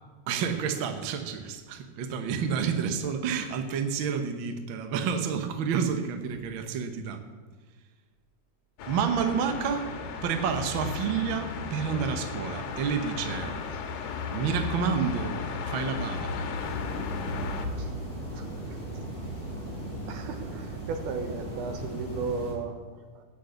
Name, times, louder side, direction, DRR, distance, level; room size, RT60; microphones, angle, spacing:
voice 1, 0.3-7.2 8.9-9.9 10.2-13.5 14.3-15.4 15.7-16.3, right 6 dB, 60° right, 7 dB, 1.3 m, -29 dB
sound 1, 8.8-17.7, left 5 dB, 75° left, 2.6 m, -35 dB
sound 2, 16.6-22.5, right 1 dB, 15° left, 5.6 m, -37 dB
voice 2, 18.3-18.8 20.1-23.3, right 4 dB, 85° right, 6 dB, 2.7 m, -36 dB
16.0 x 6.5 x 8.2 m, 1.4 s
omnidirectional pair, 3.5 m